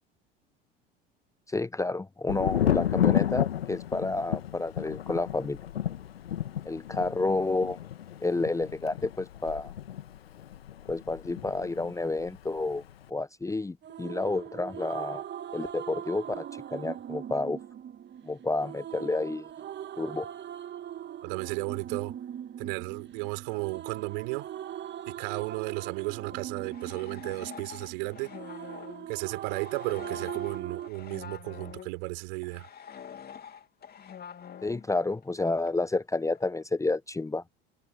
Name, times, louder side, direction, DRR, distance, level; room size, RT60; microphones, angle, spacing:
voice 1, 1.5-5.6 6.6-7.8 8.2-9.7 10.9-12.8 13.1-15.2 15.5-16.5 16.7-17.6 18.2-19.5 20.0-20.3 34.6-37.4, left 2 dB, 10° left, 0.9 m, -30 dB
Thunder, 2.3-11.9 12.2-12.9, left 11 dB, 75° left, 1.7 m, -31 dB
sound 1, 13.8-30.9, right 10 dB, 35° right, 2.8 m, -40 dB
voice 2, 21.2-22.1 22.6-24.5 25.1-28.3 29.1-32.7, right 30 dB, 60° right, 4.3 m, -34 dB
sound 2, 26.3-32.0 32.4-35.4 35.7-35.8 36.3-36.6, left 8 dB, 30° left, 3.2 m, -46 dB
figure-of-eight pair, 70°, 30 cm